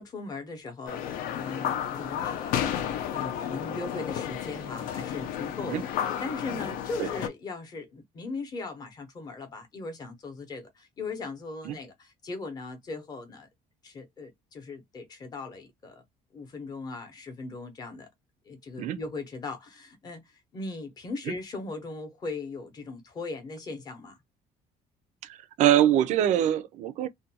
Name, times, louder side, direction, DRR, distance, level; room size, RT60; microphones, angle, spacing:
voice 1, 0.0-13.5 13.8-16.0 16.3-18.1 18.5-20.2 20.5-24.2, left 3 dB, 25° left, 0.7 m, -39 dB
sound 1, 0.9-7.3, left 9 dB, 65° left, 0.5 m, -32 dB
voice 2, 25.2-27.1, right 11 dB, 50° right, 0.4 m, -24 dB
2.5 x 2.2 x 2.7 m
cardioid pair, 180°, 15 cm